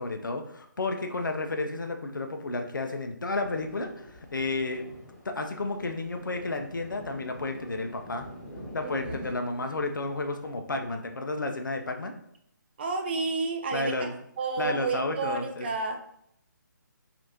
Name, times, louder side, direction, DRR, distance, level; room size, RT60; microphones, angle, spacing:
voice 1, 0.0-4.8 5.2-8.3 8.7-12.1 13.7-14.1 14.6-15.7, left 2 dB, 75° left, 5 dB, 0.4 m, -32 dB
Thunder, 3.4-10.5, equal, 40° left, 1.4 m, -46 dB
voice 2, 8.8-9.4 12.8-14.1 14.4-16.0, right 4 dB, 30° right, 4 dB, 0.3 m, -31 dB
3.0 x 2.5 x 2.6 m, 0.74 s
figure-of-eight pair, 145°, 11 cm